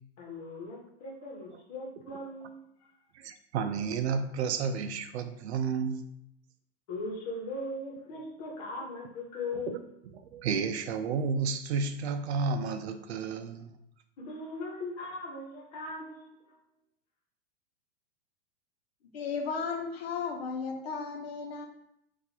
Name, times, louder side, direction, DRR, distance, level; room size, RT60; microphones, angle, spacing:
voice 1, 0.2-2.9 6.9-9.8 14.2-16.6, left 2 dB, 40° left, -1 dB, 1.1 m, -39 dB
voice 2, 3.1-6.1 9.7-9.8 10.2-13.7, right 5 dB, 75° right, 8 dB, 0.6 m, -31 dB
voice 3, 19.1-21.7, left 5 dB, 65° left, 2 dB, 0.9 m, -34 dB
6.1 x 2.6 x 2.8 m, 0.78 s
supercardioid pair, 180°, 34 cm